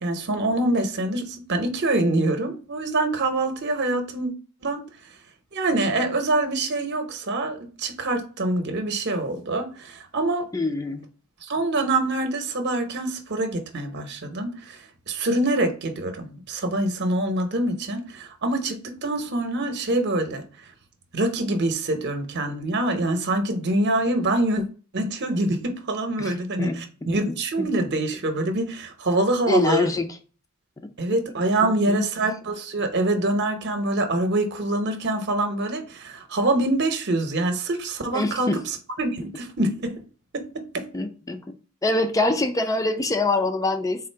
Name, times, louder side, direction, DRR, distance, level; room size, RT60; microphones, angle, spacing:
voice 1, 0.0-4.3 4.6-4.8 5.5-10.5 11.5-20.4 21.1-24.6 24.9-29.9 31.0-40.0 40.3-40.4 40.7-40.9, right 2 dB, 55° right, 0.8 m, -25 dB
voice 2, 10.5-11.1 26.2-26.8 27.6-27.7 29.5-30.1 31.9-32.0 38.1-38.6 40.9-41.4 41.8-44.1, left 2 dB, 15° left, 0.4 m, -24 dB
3.7 x 2.5 x 4.4 m
head